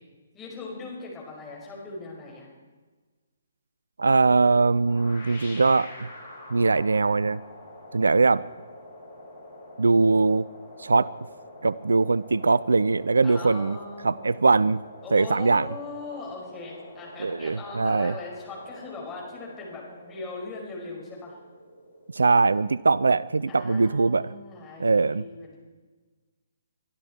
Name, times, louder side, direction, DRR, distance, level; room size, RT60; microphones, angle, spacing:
voice 1, 0.3-2.5 13.2-14.3 15.0-21.4 23.5-25.6, left 3 dB, 15° left, -3 dB, 5.4 m, -39 dB
voice 2, 4.0-6.1 6.5-7.4 7.9-8.4 9.8-10.5 10.8-11.1 11.6-13.8 14.0-14.8 15.1-15.7 17.2-18.1 22.1-24.3 24.8-25.2, right 3 dB, 70° right, 20 dB, 0.4 m, -21 dB
sound 1, 4.8-23.7, left 1 dB, 55° left, 5.6 m, -46 dB
24.0 x 12.5 x 4.5 m, 1.3 s
figure-of-eight pair, 130°, 0 cm